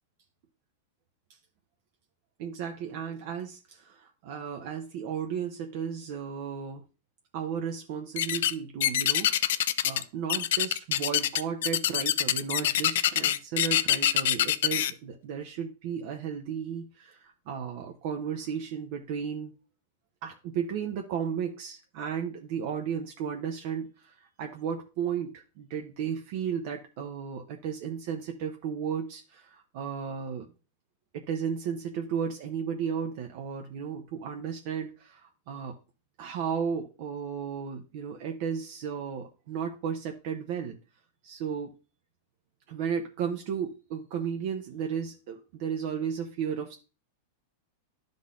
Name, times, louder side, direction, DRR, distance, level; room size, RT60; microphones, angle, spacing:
voice 1, 2.4-6.8 7.3-19.5 20.2-30.5 31.1-35.8 36.2-40.8 41.2-41.8 42.7-46.7, right 7 dB, 55° right, 4 dB, 0.8 m, -34 dB
sound 1, 8.2-8.5 8.8-10.0 10.3-14.9, left 12 dB, 75° left, 0.4 m, -25 dB
11.0 x 3.9 x 3.7 m, 0.33 s
supercardioid pair, 150°, 0 cm